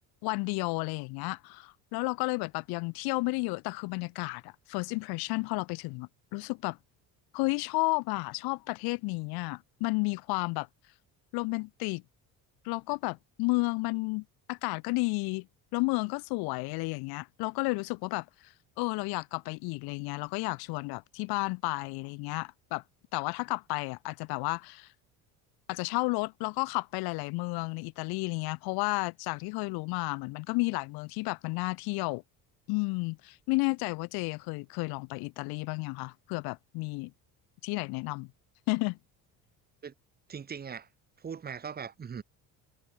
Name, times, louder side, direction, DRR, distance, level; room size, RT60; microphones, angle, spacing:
voice 1, 0.2-6.8 7.3-10.7 11.3-12.0 12.6-15.5 15.7-22.8 23.1-24.9 25.7-32.2 32.7-37.1 37.6-38.3 38.7-39.0, left 26 dB, 85° left, 1.4 m, -32 dB
voice 2, 40.3-40.9 41.2-42.2, right 7 dB, 25° right, 2.6 m, -40 dB
cardioid pair, 145°, 37 cm